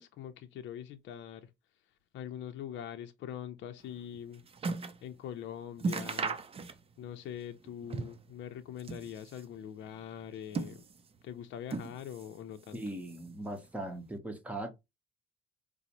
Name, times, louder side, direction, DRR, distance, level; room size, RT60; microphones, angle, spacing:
voice 1, 0.0-1.5 2.1-4.4 5.0-6.4 7.0-10.8 11.2-12.8, left 9 dB, 65° left, 0.5 m, -43 dB
sound 1, 3.9-5.1 5.4-5.5 5.8-7.1 7.4-8.3 8.7-9.5 10.2-11.2 11.7-12.4 12.7-13.4 14.1-14.2, right 4 dB, 30° right, 0.5 m, -38 dB
voice 2, 12.7-14.7, right 1 dB, 5° right, 0.9 m, -39 dB
4.8 x 2.0 x 2.9 m
cardioid pair, 105°, 21 cm